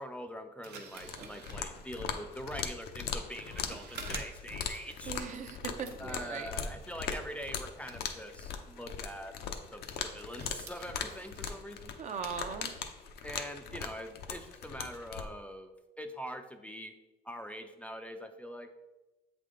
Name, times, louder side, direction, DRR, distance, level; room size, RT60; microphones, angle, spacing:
voice 1, 0.0-5.2 6.0-9.4 9.7-11.9 13.2-16.9 17.2-18.7, equal, 10° left, 5 dB, 0.4 m, -43 dB
sound 1, 0.6-5.6 5.8-11.6, right 5 dB, 75° right, 0.8 m, -52 dB
sound 2, 0.9-15.3, left 6 dB, 75° left, 0.6 m, -40 dB
voice 2, 5.1-6.5 12.0-12.7, right 6 dB, 45° right, 7 dB, 0.6 m, -39 dB
7.5 x 3.6 x 3.7 m, 1.1 s
cardioid pair, 110°, 17 cm